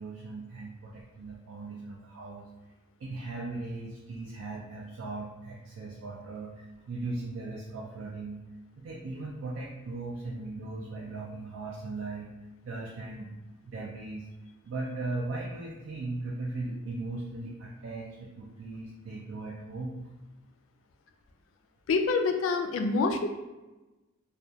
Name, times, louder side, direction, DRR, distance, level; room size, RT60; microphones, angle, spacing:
voice 1, 0.0-2.5 3.0-8.4 8.8-12.3 12.6-13.3 13.7-14.3 14.6-19.9, right 2 dB, 70° right, -4 dB, 0.4 m, -38 dB
voice 2, 21.9-23.3, left 4 dB, 75° left, 6 dB, 0.3 m, -26 dB
2.3 x 2.2 x 2.6 m, 1.1 s
head